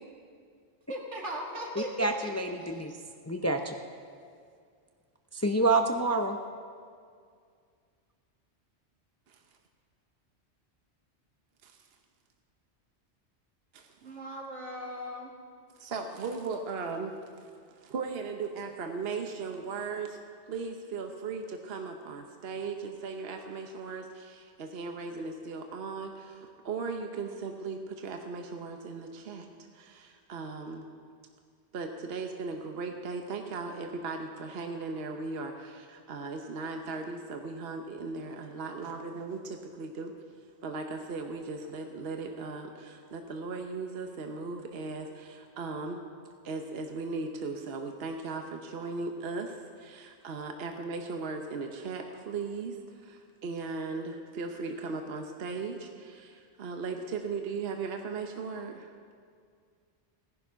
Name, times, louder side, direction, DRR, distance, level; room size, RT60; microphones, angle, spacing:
voice 1, 0.9-2.8 14.0-15.3, equal, 80° right, -1 dB, 2.4 m, -39 dB
voice 2, 1.8-2.9 3.3-3.8 5.3-6.4, right 2 dB, 20° left, 5 dB, 0.5 m, -27 dB
voice 3, 15.8-17.5 17.8-20.2 20.5-29.5 29.7-30.8 31.7-40.1 40.6-46.0 46.4-58.9, right 4 dB, 60° right, 4 dB, 1.1 m, -37 dB
17.0 x 10.5 x 5.7 m, 2.2 s
omnidirectional pair, 1.2 m